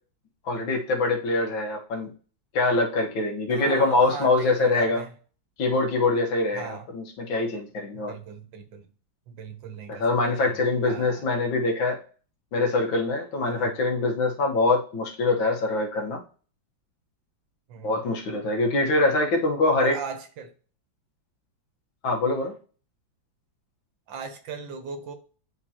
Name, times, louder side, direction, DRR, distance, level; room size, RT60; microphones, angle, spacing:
voice 1, 0.5-2.1 2.5-5.0 5.6-8.1 9.9-12.0 12.5-16.2 17.8-20.0 22.0-22.5, left 2 dB, 85° left, 1 dB, 2.0 m, -24 dB
voice 2, 3.5-5.1 6.5-6.9 7.9-8.9 9.3-10.1 10.4-11.3 13.4-13.8 17.7-17.9 19.8-20.5 24.1-25.1, right 6 dB, 80° right, 7 dB, 1.7 m, -38 dB
9.7 x 3.7 x 2.9 m, 0.40 s
omnidirectional pair, 2.1 m